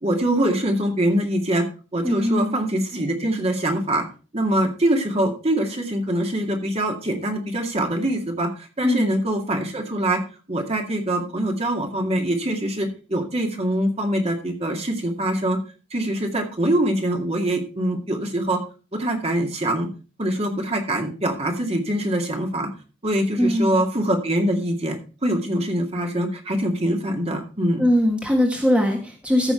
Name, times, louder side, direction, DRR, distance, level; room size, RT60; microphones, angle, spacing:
voice 1, 0.0-1.7 1.9-4.0 4.3-8.5 8.8-10.2 10.5-15.6 15.9-18.6 18.9-19.9 20.2-22.7 23.0-27.9, right 1 dB, 35° right, 3 dB, 2.2 m, -23 dB
voice 2, 2.0-2.7 8.8-9.1 23.4-23.8 27.8-29.5, equal, 5° right, 1 dB, 1.5 m, -21 dB
14.5 x 6.0 x 4.4 m, 0.34 s
head